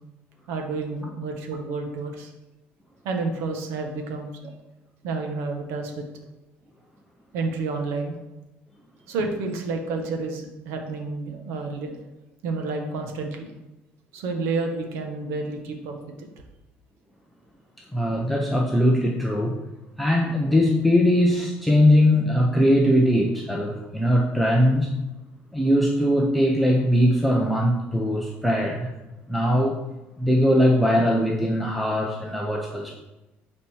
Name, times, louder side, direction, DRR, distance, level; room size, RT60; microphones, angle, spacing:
voice 1, 0.5-2.3 3.0-4.5 5.0-6.0 7.3-8.2 9.1-12.0 12.4-13.5 14.1-16.3, right 3 dB, 85° right, 3 dB, 1.5 m, -30 dB
voice 2, 17.9-19.5 20.0-24.9 25.5-28.9 29.3-29.8 30.2-33.0, equal, ahead, -1 dB, 0.8 m, -20 dB
9.1 x 4.3 x 6.3 m, 1.0 s
cardioid pair, 165°, 4 cm